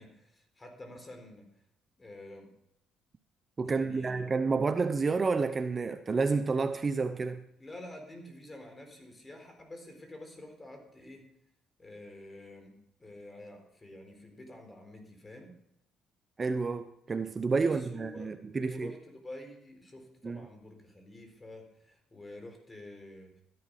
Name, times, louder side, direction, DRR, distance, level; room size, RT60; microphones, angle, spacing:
voice 1, 0.0-1.5 2.0-2.5 3.6-4.3 7.6-11.2 11.8-15.5 17.5-23.4, left 1 dB, 25° left, 4.1 m, -48 dB
voice 2, 3.6-7.4 16.4-18.9 20.2-20.4, right 4 dB, 35° right, 0.7 m, -30 dB
13.0 x 11.0 x 4.8 m
supercardioid pair, 80°, 0 cm